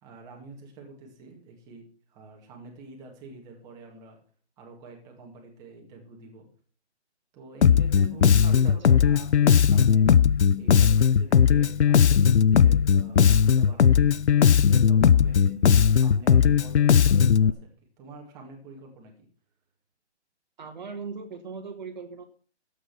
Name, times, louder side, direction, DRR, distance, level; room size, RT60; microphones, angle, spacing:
voice 1, 0.0-4.2 4.6-6.5 7.3-10.1 10.5-14.0 14.3-17.7 18.0-19.1, right 3 dB, 10° right, 0 dB, 2.0 m, -46 dB
Bass guitar, 7.6-17.5, left 7 dB, 70° left, 0.7 m, -18 dB
voice 2, 8.4-9.0 20.6-22.2, right 5 dB, 40° right, 6 dB, 1.3 m, -39 dB
13.0 x 8.5 x 5.7 m, 0.43 s
hypercardioid pair, 160°, 35 cm